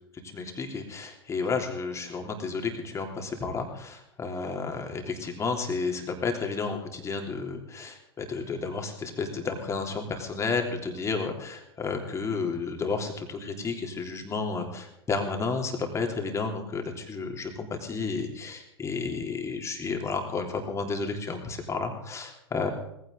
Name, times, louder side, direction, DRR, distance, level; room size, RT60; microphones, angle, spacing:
voice 1, 0.3-22.7, left 4 dB, 20° left, 3 dB, 3.3 m, -32 dB
19.0 x 16.0 x 4.0 m, 0.79 s
figure-of-eight pair, 90°, 14 cm